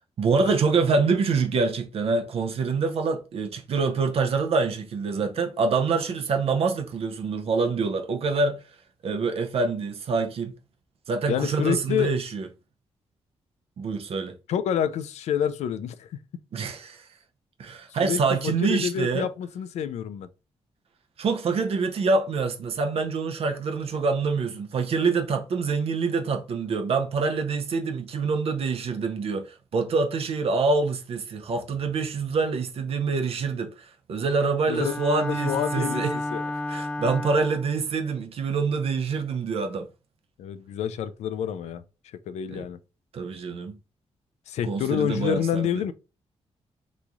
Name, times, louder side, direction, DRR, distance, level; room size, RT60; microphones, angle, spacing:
voice 1, 0.2-8.6 9.0-10.5 11.1-12.5 13.8-14.4 16.5-17.1 17.6-19.3 21.2-36.2 36.7-39.9 42.5-42.7 43.1-43.8 44.7-45.8, right 4 dB, 60° right, 0.6 m, -26 dB
voice 2, 11.3-12.1 14.5-16.1 18.0-20.3 34.7-36.4 40.4-41.8 42.3-42.8 44.5-45.9, left 9 dB, 85° left, 0.4 m, -28 dB
Bowed string instrument, 34.7-37.8, left 2 dB, 10° left, 0.5 m, -31 dB
3.1 x 2.3 x 3.8 m
cardioid pair, 100°, 11 cm